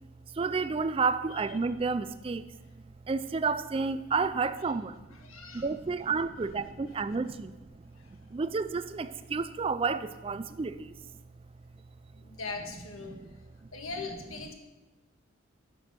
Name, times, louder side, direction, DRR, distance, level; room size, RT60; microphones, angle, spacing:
voice 1, 0.3-2.5 3.1-5.0 5.5-7.5 8.1-10.9 13.1-13.3, right 4 dB, 25° right, 13 dB, 0.3 m, -31 dB
voice 2, 5.1-5.7 7.9-8.2 12.2-13.2 13.7-14.5, left 3 dB, 90° left, 4 dB, 1.5 m, -40 dB
12.5 x 6.0 x 6.0 m, 1.2 s
head